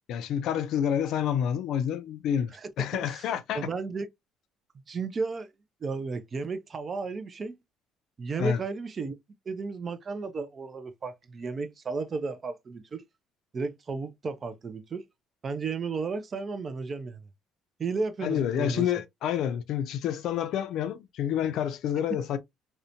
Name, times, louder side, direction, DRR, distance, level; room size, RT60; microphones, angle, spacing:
voice 1, 0.1-3.7 8.4-8.6 18.2-22.4, left 9 dB, 65° left, 0.4 m, -28 dB
voice 2, 2.5-3.2 3.5-4.1 4.9-5.5 5.8-7.6 8.2-9.2 9.5-13.0 13.5-15.0 15.4-17.3 17.8-18.9, right 4 dB, 30° right, 0.4 m, -33 dB
2.7 x 2.1 x 2.5 m
cardioid pair, 130°, 0 cm